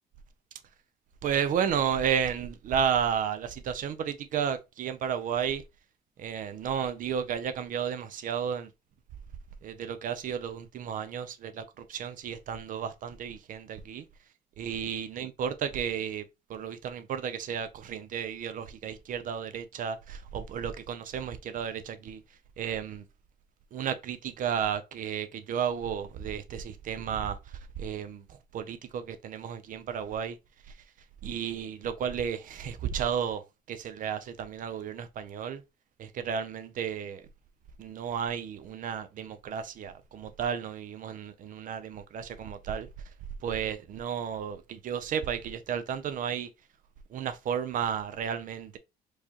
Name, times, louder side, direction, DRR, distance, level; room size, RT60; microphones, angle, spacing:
voice 1, 1.2-5.6 6.2-8.7 9.6-11.6 11.9-14.0 14.6-16.2 16.5-22.2 22.6-23.0 23.7-27.4 27.8-28.2 28.5-30.4 31.2-33.4 33.7-35.6 36.0-37.2 37.8-42.9 43.4-46.5 47.1-48.8, right 8 dB, 55° right, 0.5 m, -32 dB
4.7 x 2.4 x 2.8 m
cardioid pair, 110°, 17 cm